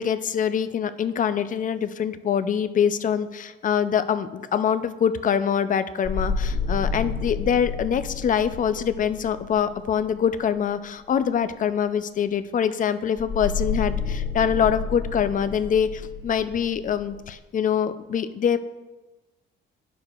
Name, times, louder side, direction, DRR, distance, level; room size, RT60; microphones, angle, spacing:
voice 1, 0.0-18.6, left 8 dB, 40° left, 12 dB, 0.4 m, -24 dB
sound 1, 6.0-10.4 13.2-17.3, left 4 dB, 20° left, 1.3 m, -30 dB
9.6 x 6.7 x 2.4 m, 1.2 s
cardioid pair, 90°, 20 cm